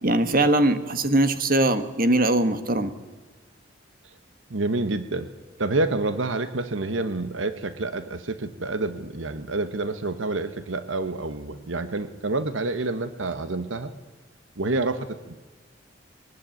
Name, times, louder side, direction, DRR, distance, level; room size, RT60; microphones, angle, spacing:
voice 1, 0.0-2.9, right 1 dB, 50° right, 10 dB, 1.6 m, -21 dB
voice 2, 4.5-5.3 5.6-13.9 14.6-15.4, right 2 dB, 85° right, 11 dB, 1.2 m, -28 dB
21.5 x 20.0 x 9.1 m, 1.3 s
head